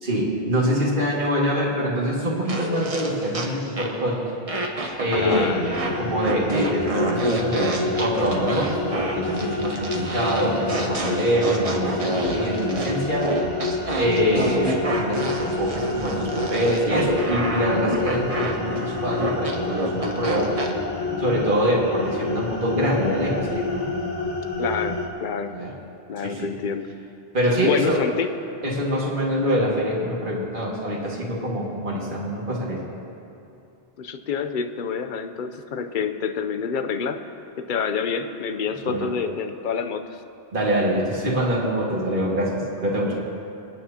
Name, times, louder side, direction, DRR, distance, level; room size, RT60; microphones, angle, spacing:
voice 1, 0.0-4.2 5.0-5.6 5.9-13.3 13.9-20.5 21.2-24.3 25.5-25.7 26.2-26.5 27.3-28.0 28.6-32.8 38.9-39.1 40.5-43.2, equal, 55° right, -4 dB, 2.2 m, -24 dB
sound 1, 2.5-4.1 4.5-20.7, right 2 dB, 35° right, 1.1 m, -29 dB
voice 2, 5.1-5.6 24.6-25.5 26.1-26.9 27.6-28.3 34.0-37.2 37.6-40.2, left 6 dB, 55° left, 8 dB, 0.8 m, -27 dB
sound 2, 5.1-25.1, left 2 dB, 40° left, 1.4 m, -28 dB
27.0 x 9.3 x 2.9 m, 2.7 s
omnidirectional pair, 1.1 m